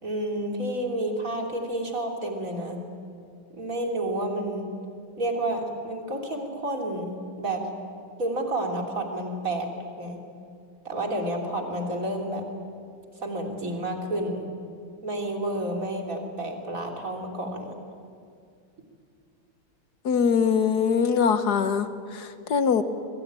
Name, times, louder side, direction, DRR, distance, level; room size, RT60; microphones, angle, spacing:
voice 1, 0.0-2.8 3.5-4.7 5.2-7.1 7.4-7.6 8.2-9.7 10.0-10.2 10.9-12.5 13.2-14.4 15.0-17.7, right 1 dB, 40° right, 1 dB, 3.7 m, -30 dB
voice 2, 20.0-22.8, left 6 dB, 55° left, 10 dB, 1.5 m, -23 dB
26.5 x 22.5 x 9.0 m, 2.3 s
omnidirectional pair, 2.3 m